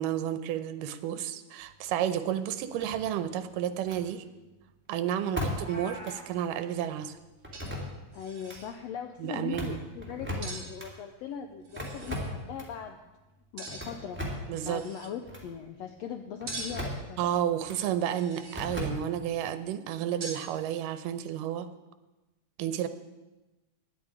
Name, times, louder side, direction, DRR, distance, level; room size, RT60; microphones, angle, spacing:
voice 1, 0.0-4.2 4.9-7.2 9.2-9.8 14.5-14.8 17.2-21.7 22.6-22.9, right 10 dB, 85° right, 11 dB, 2.4 m, -31 dB
sound 1, 2.8-3.3 3.8-4.0 5.4-5.8 6.0-6.1 7.4-8.1 8.4-8.6 9.4-10.9 11.8-12.8 13.7-14.6 15.3-15.5 16.4-17.1 17.6-17.8 18.5-19.3, left 1 dB, 5° right, 2.0 m, -37 dB
Meow, 5.4-6.3, equal, 25° left, 1.3 m, -44 dB
sound 2, 7.1-7.2 7.5-7.9 8.1-8.7 10.4-10.7 11.6-12.2 13.6-14.0 14.5-15.1 16.5-16.9 18.0-18.8 20.2-20.5, right 3 dB, 60° right, 4.5 m, -42 dB
voice 2, 8.1-13.0 13.5-14.2 14.6-17.2, left 8 dB, 85° left, 6 dB, 1.4 m, -40 dB
10.5 x 8.5 x 9.6 m, 1.1 s
omnidirectional pair, 3.8 m